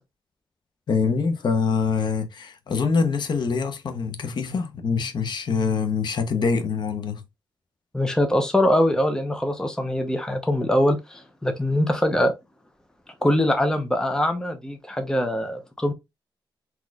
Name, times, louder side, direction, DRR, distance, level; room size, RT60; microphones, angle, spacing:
voice 1, 0.9-7.2, left 5 dB, 60° left, 0.8 m, -24 dB
voice 2, 7.9-12.3 13.2-15.9, left 1 dB, 10° left, 0.7 m, -23 dB
4.1 x 2.9 x 2.3 m
cardioid pair, 110°, 9 cm